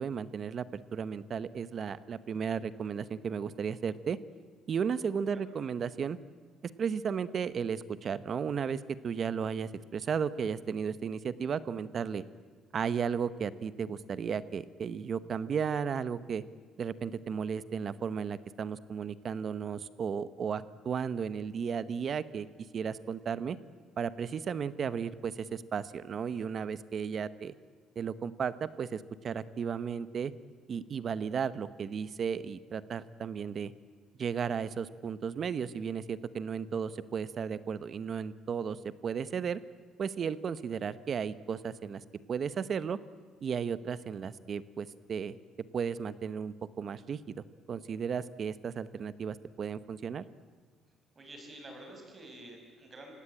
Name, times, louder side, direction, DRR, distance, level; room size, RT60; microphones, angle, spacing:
voice 1, 0.0-4.2 4.7-6.2 6.6-12.2 12.7-16.4 16.8-22.5 22.7-23.6 24.0-27.5 28.0-30.3 30.7-33.7 34.2-39.6 40.0-42.0 42.3-43.0 43.4-45.4 45.7-50.2, right 7 dB, 40° right, 15 dB, 0.9 m, -34 dB
voice 2, 51.2-53.1, right 1 dB, 25° right, 3 dB, 5.5 m, -49 dB
28.5 x 17.0 x 8.9 m, 1.5 s
cardioid pair, 140°, 0 cm